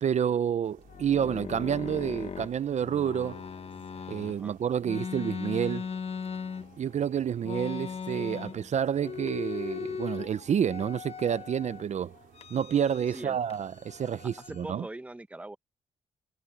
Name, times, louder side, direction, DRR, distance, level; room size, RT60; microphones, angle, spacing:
voice 1, 0.0-3.4 4.1-5.9 6.8-12.1 12.5-14.8, right 8 dB, 55° right, 0.6 m, -29 dB
sound 1, 0.6-14.3, right 9 dB, 85° right, 4.2 m, -58 dB
sound 2, 0.8-4.4 4.8-6.9 7.4-8.7 9.0-10.3 10.6-11.8 12.4-13.2 13.5-14.7, left 6 dB, 45° left, 1.2 m, -38 dB
sound 3, 0.9-1.5 2.2-5.5 6.3-8.9 9.5-12.6 13.8-14.9, left 9 dB, 75° left, 7.0 m, -59 dB
voice 2, 14.4-15.6, right 2 dB, 10° right, 0.8 m, -41 dB
cardioid pair, 105°, 14 cm